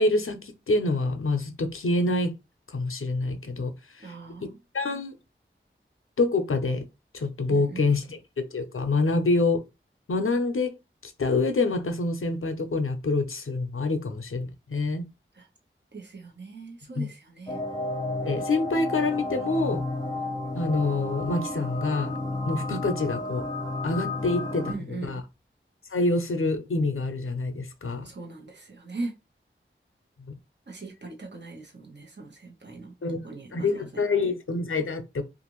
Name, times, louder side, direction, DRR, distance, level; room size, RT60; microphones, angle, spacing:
voice 1, 0.0-2.3 2.7-3.7 4.0-4.1 4.4-4.5 4.7-5.1 6.2-6.8 7.1-9.6 10.1-10.7 11.2-15.1 17.0-17.1 18.2-19.8 20.5-22.2 22.4-23.4 23.8-25.2 25.9-28.1 30.3-30.4 33.0-33.2 33.5-35.2, left 3 dB, 80° left, 0.6 m, -26 dB
voice 2, 4.0-4.5 7.5-8.0 15.3-15.5 15.9-17.6 24.6-25.2 28.0-29.1 30.7-32.9 33.2-34.3, right 3 dB, 55° right, 0.9 m, -40 dB
sound 1, 17.5-24.7, left 2 dB, 20° left, 0.7 m, -32 dB
2.5 x 2.5 x 3.0 m
wide cardioid pair, 45°, 21 cm